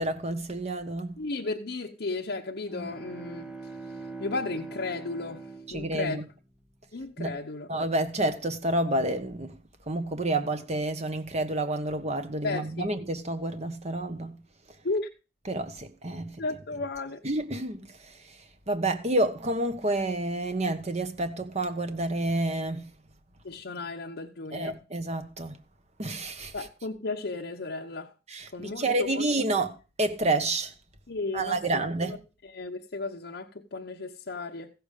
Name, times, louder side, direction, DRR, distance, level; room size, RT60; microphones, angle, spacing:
voice 1, 0.0-1.2 5.7-6.2 7.2-7.4 7.7-9.5 9.9-14.4 15.5-16.4 17.2-17.9 18.7-22.9 24.5-25.6 26.0-26.5 28.3-30.7 31.3-32.2, right 2 dB, 40° right, 1.3 m, -29 dB
voice 2, 1.2-3.5 4.2-6.2 6.9-7.7 12.4-12.9 14.8-15.1 16.4-17.2 23.4-24.8 26.5-28.1 28.5-28.9 29.1-29.3 31.1-32.2 32.5-34.7, left 3 dB, 60° left, 0.9 m, -34 dB
sound 1, 2.6-6.6, right 3 dB, 5° right, 1.3 m, -42 dB
15.0 x 6.9 x 5.2 m
head